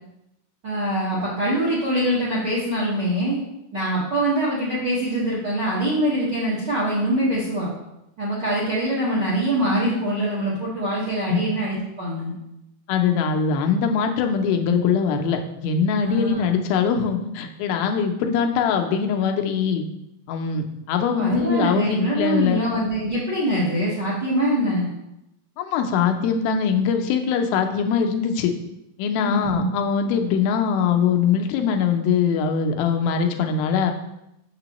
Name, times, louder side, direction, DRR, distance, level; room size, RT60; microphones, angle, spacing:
voice 1, 0.6-3.4 3.7-7.7 8.2-12.3 16.0-16.5 21.2-24.9 29.2-29.7, right 1 dB, 60° right, -8 dB, 1.1 m, -24 dB
voice 2, 12.9-19.9 20.3-22.6 25.6-28.5 29.0-33.9, left 6 dB, 90° left, 4 dB, 2.5 m, -22 dB
6.8 x 6.5 x 3.0 m, 0.86 s
omnidirectional pair, 4.1 m